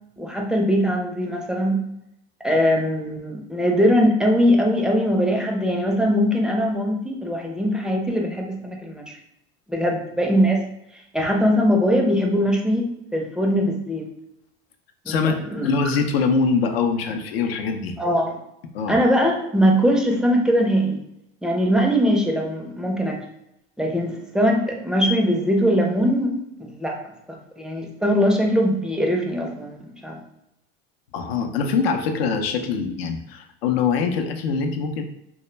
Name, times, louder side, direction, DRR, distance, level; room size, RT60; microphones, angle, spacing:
voice 1, 0.2-1.9 2.4-9.2 9.7-10.6 11.1-14.1 15.1-15.7 18.0-18.4 18.9-21.0 21.4-23.2 23.8-26.3 26.6-27.0 27.6-30.2, equal, ahead, 0 dB, 0.4 m, -21 dB
voice 2, 15.6-17.9 18.7-19.0 31.1-35.0, left 5 dB, 80° left, 5 dB, 0.5 m, -23 dB
2.1 x 2.1 x 3.1 m, 0.82 s
hypercardioid pair, 90°, 30 cm